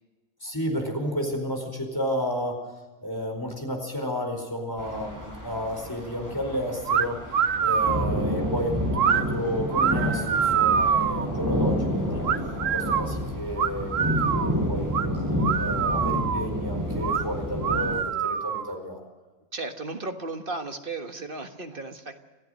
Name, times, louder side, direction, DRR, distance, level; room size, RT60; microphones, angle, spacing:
voice 1, 0.4-2.6 3.0-7.2 7.6-12.2 12.7-15.1 15.6-19.0, equal, 15° left, 2 dB, 4.6 m, -32 dB
sound 1, 4.8-18.0, equal, 10° right, 7.6 m, -29 dB
sound 2, 6.9-7.1 7.3-8.1 8.9-9.2 9.7-11.3 12.2-13.1 13.6-14.5 14.9-15.1 15.4-16.5 17.0-17.2 17.6-18.7, right 7 dB, 65° right, 1.4 m, -25 dB
voice 2, 19.5-22.2, right 3 dB, 40° right, 6 dB, 1.6 m, -35 dB
27.0 x 15.0 x 6.5 m, 1.2 s
omnidirectional pair, 1.5 m